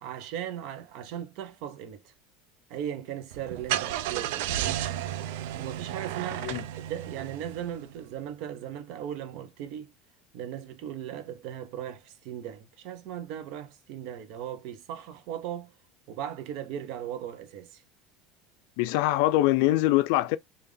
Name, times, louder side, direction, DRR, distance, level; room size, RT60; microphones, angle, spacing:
voice 1, 0.0-2.1 2.7-4.8 5.6-6.5 6.8-9.9 10.3-15.7 16.1-17.8, right 10 dB, 60° right, 0.7 m, -38 dB
Car / Engine starting, 3.3-8.0, right 12 dB, 85° right, 0.4 m, -33 dB
voice 2, 18.8-20.4, left 16 dB, 70° left, 0.4 m, -23 dB
3.4 x 2.4 x 3.4 m
cardioid pair, 160°, 0 cm